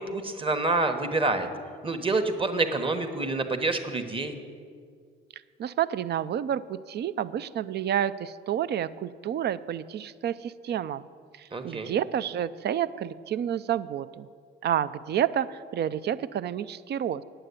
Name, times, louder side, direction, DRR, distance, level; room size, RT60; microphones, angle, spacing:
voice 1, 0.0-1.5 1.8-4.4 11.5-11.9, right 3 dB, 25° right, 7 dB, 1.1 m, -27 dB
voice 2, 5.6-11.1 11.4-14.3 14.6-17.2, right 10 dB, 60° right, 15 dB, 0.4 m, -29 dB
9.0 x 7.8 x 8.2 m, 2.1 s
cardioid pair, 90°, 20 cm